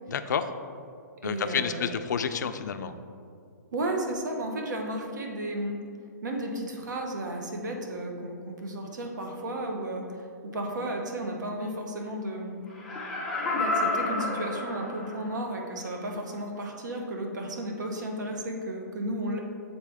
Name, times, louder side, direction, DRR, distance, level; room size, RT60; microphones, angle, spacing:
voice 1, 0.1-0.5 1.2-3.0, left 7 dB, 75° left, 10 dB, 0.4 m, -29 dB
voice 2, 1.2-2.0 3.7-5.8 6.2-12.6 13.5-19.4, right 1 dB, 75° right, 2 dB, 1.0 m, -33 dB
Laughter, 12.7-15.4 15.8-15.9, left 2 dB, 5° left, 0.4 m, -30 dB
7.3 x 4.1 x 3.4 m, 2.3 s
hypercardioid pair, 180°, 10 cm